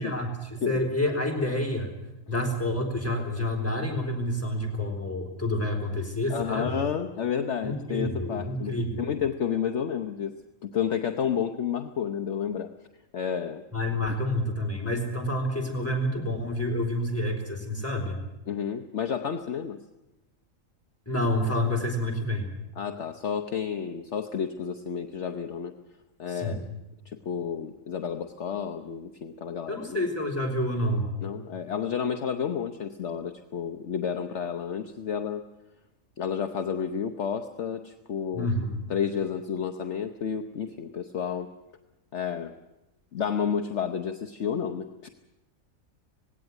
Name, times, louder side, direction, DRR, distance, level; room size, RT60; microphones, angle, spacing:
voice 1, 0.0-1.9 2.3-6.8 7.6-9.1 13.7-18.2 21.1-22.5 26.3-26.6 29.7-31.1 38.3-38.8, left 1 dB, 10° left, -1 dB, 3.9 m, -28 dB
voice 2, 6.3-10.3 10.6-12.7 13.1-13.6 18.5-19.8 22.8-25.7 26.2-26.6 27.0-30.0 31.2-35.4 36.2-38.5 38.9-41.5 42.1-42.5 43.1-45.1, left 7 dB, 55° left, 7 dB, 1.2 m, -31 dB
18.5 x 17.0 x 9.5 m, 0.96 s
omnidirectional pair, 1.5 m